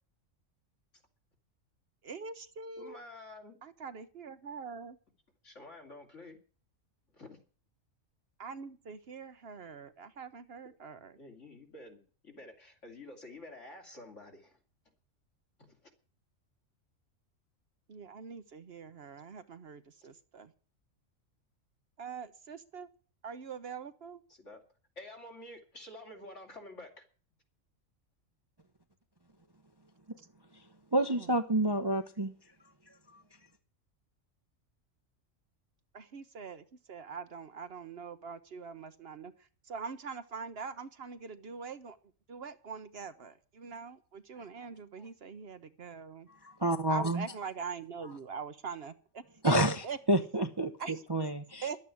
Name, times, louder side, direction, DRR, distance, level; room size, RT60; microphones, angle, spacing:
voice 1, 2.0-3.0 3.6-5.0 8.4-11.2 17.9-20.5 22.0-22.9 23.2-24.2 30.2-30.3 31.2-31.3 31.7-31.8 35.9-42.0 42.3-46.3 46.9-49.6 49.8-50.0 50.8-51.0 51.6-51.8, right 5 dB, 55° right, 1.0 m, -43 dB
voice 2, 2.8-3.6 5.4-6.4 7.1-7.4 11.2-14.6 15.7-15.9 24.3-24.6 25.0-27.1, left 2 dB, 65° left, 3.3 m, -49 dB
voice 3, 30.9-32.3 46.4-47.3 49.4-49.8 50.1-50.7 51.1-51.6, right 1 dB, 25° right, 0.7 m, -28 dB
11.5 x 8.5 x 9.6 m
omnidirectional pair, 1.3 m